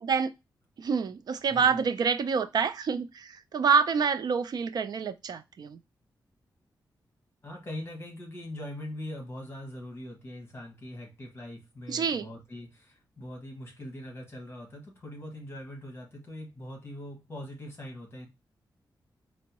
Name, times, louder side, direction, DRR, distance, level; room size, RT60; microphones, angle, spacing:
voice 1, 0.0-0.3 0.8-5.8 11.9-12.3, right 6 dB, 60° right, 0.4 m, -27 dB
voice 2, 7.4-18.3, left 1 dB, 30° left, 1.2 m, -42 dB
4.4 x 2.0 x 2.8 m
wide cardioid pair, 145°, 8 cm